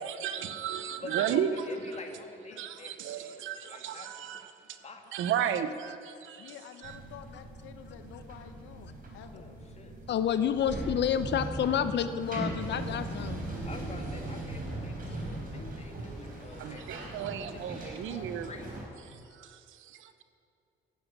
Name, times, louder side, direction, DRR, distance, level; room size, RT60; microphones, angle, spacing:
voice 1, 0.0-1.7 2.6-4.8 5.1-6.5 6.8-7.0 16.6-18.5 19.0-20.2, right 9 dB, 85° right, 11 dB, 0.9 m, -34 dB
voice 2, 1.0-4.3 4.8-5.2 9.3-10.0 13.7-17.4 17.8-18.9, left 3 dB, 35° left, 4 dB, 1.8 m, -48 dB
voice 3, 6.4-9.6, left 9 dB, 85° left, 8 dB, 1.0 m, -50 dB
sound 1, 6.8-18.8, right 1 dB, 45° right, 4.0 m, -39 dB
voice 4, 10.1-13.4, left 8 dB, 60° left, 11 dB, 0.8 m, -29 dB
12.5 x 8.2 x 8.9 m, 2.6 s
cardioid pair, 90°, 20 cm